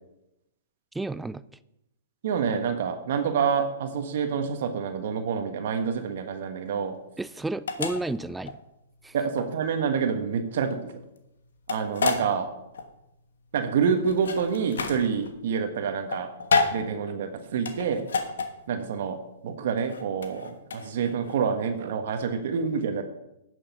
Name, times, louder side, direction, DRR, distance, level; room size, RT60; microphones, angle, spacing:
voice 1, 0.9-1.4 7.2-8.6 9.0-9.1, right 2 dB, 5° right, 16 dB, 0.4 m, -31 dB
voice 2, 2.2-6.9 9.1-10.9 11.7-12.5 13.5-16.3 16.7-18.1 18.7-19.2 19.4-23.0, right 6 dB, 65° right, 7 dB, 1.2 m, -27 dB
sound 1, 6.0-21.4, left 4 dB, 85° left, 1.2 m, -31 dB
10.5 x 6.5 x 5.4 m, 0.88 s
hypercardioid pair, 130°, 0 cm